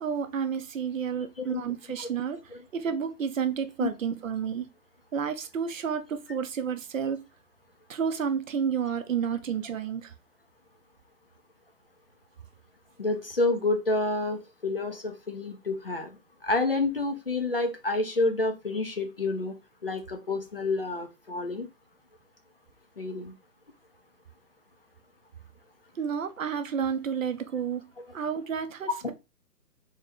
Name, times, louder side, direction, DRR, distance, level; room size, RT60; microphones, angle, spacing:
voice 1, 0.0-2.4 2.7-4.7 5.1-7.2 7.9-10.1 26.0-27.8 28.1-29.1, right 7 dB, 55° right, 0.6 m, -30 dB
voice 2, 1.2-1.6 2.0-2.1 2.5-2.6 3.8-3.9 13.0-16.1 16.4-19.5 19.8-21.7 23.0-23.3 29.0-29.1, left 2 dB, 40° left, 0.4 m, -29 dB
3.4 x 2.7 x 3.4 m
hypercardioid pair, 155°, 48 cm